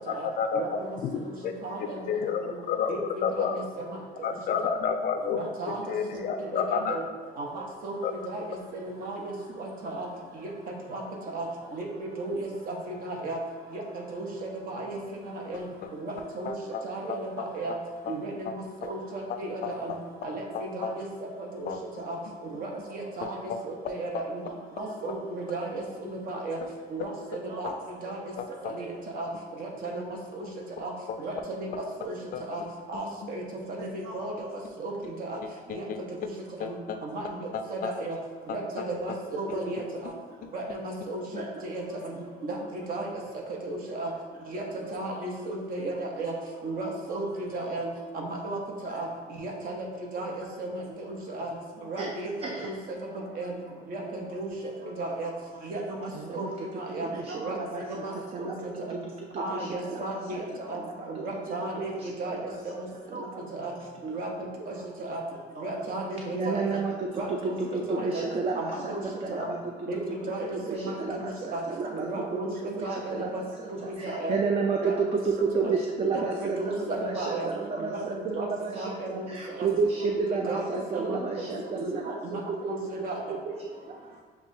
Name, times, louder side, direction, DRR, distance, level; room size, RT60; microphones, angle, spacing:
voice 1, 0.1-0.6 1.0-3.6 4.2-5.4 5.9-7.0 8.0-8.1 16.5-16.8 17.1-17.8 18.1-18.2 18.5-18.6 18.8-18.9 19.3-20.0 20.5-20.9 21.7-21.8 23.2-23.6 24.1-24.2 28.4-28.7 31.1-31.2 32.3-32.4 35.7-36.0 36.6-37.0 37.5-37.9 38.5-38.6, left 6 dB, 55° left, 7 dB, 0.4 m, -31 dB
voice 2, 1.6-2.0 2.9-3.0 3.3-3.6 5.3-5.8 6.1-6.2 6.5-7.0 7.4-7.5 7.8-8.0 8.2-8.4 8.8-9.2 9.6-10.1 10.9-11.0 11.3-11.5 11.7-12.5 12.9-13.4 13.7-13.8 14.1-14.3 14.7-15.0 15.5-15.6 15.9-16.5 16.8-17.7 18.1-18.3 18.8-19.9 20.2-20.4 20.7-21.0 21.6-21.7 22.1-22.2 22.6-23.4 23.9-24.4 24.8-25.8 26.1-26.6 26.9-27.1 27.5-27.7 28.0-28.2 28.8-28.9 29.1-29.3 29.6-30.0 30.4-30.5 30.8-30.9 31.2-31.7 32.0-32.1 32.5-32.6 32.9-33.4 33.7-34.3 34.8-34.9 35.2-35.4 35.7-35.8 36.6-36.7 37.0-37.2 37.7-38.2 38.5-39.8 40.5-42.2 42.4-42.6 42.9-43.1 43.6-44.1 44.5-44.6 44.9-46.3 46.6-47.3 47.5-47.9 48.1-48.6 48.8-49.1 49.4-49.9 50.1-50.3 50.6-50.8 51.3-51.5 51.9-52.7 53.4-53.5 53.9-54.5 55.0-55.3 55.6-56.5 56.7-58.1 58.4-58.5 58.9-59.0 59.4-60.4 60.7-60.8 61.1-61.9 62.2-62.4 62.6-62.7 63.1-63.2 63.5-63.7 64.0-64.3 64.7-65.2 65.6-66.7 67.2-67.6 67.9-68.3 68.5-69.0 69.3-69.5 69.9-71.6 71.9-72.5 72.8-73.4 74.0-74.3 74.8-74.9 75.6-75.7 76.4-77.5 77.8-78.5 78.8-79.3 79.6-79.7 80.0-80.6 80.9-81.2 82.0-82.1 82.6-82.8 83.0-83.2, right 2 dB, 55° right, 0 dB, 0.9 m, -34 dB
voice 3, 56.1-60.4 60.7-61.2 61.8-62.6 63.1-63.4 66.3-69.6 70.7-72.1 72.6-82.6 83.5-84.1, right 4 dB, 35° right, 1 dB, 0.4 m, -32 dB
7.0 x 2.4 x 2.7 m, 1.4 s
cardioid pair, 110°, 17 cm